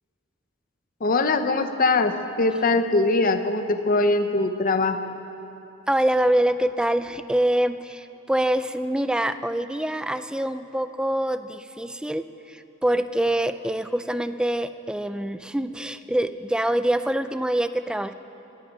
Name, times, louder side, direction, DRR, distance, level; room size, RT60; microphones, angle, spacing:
voice 1, 1.0-5.1, left 3 dB, 45° left, 8 dB, 0.8 m, -22 dB
voice 2, 5.9-18.1, right 1 dB, 5° right, 11 dB, 0.4 m, -25 dB
25.5 x 10.5 x 5.3 m, 3.0 s
head